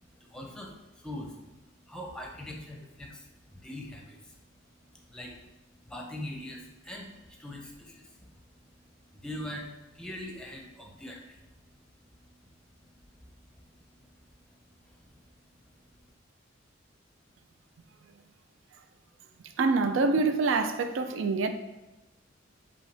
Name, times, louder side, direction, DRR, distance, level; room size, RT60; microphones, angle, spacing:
voice 1, 0.0-4.4 4.9-5.5 5.8-11.7 12.2-12.5 13.1-13.4 13.7-13.8 14.3-14.6 14.9-15.3 15.8-16.1, left 1 dB, 5° left, 0.6 m, -43 dB
voice 2, 19.6-21.5, right 3 dB, 75° right, 0.4 m, -25 dB
5.2 x 2.8 x 3.3 m
head